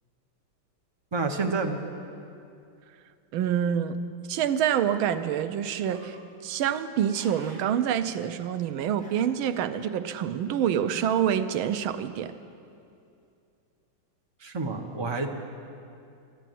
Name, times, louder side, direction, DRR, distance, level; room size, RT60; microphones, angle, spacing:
voice 1, 1.1-1.8 14.4-15.3, right 3 dB, 30° right, 3 dB, 0.5 m, -29 dB
voice 2, 3.3-4.0 4.3-6.2 6.4-12.3, right 9 dB, 85° right, 10 dB, 1.5 m, -26 dB
sound 1, 5.8-6.2 6.8-7.7 8.2-8.3 8.9-9.5 10.7-11.2, equal, 25° left, 3.3 m, -51 dB
13.5 x 11.0 x 9.2 m, 2.5 s
omnidirectional pair, 2.2 m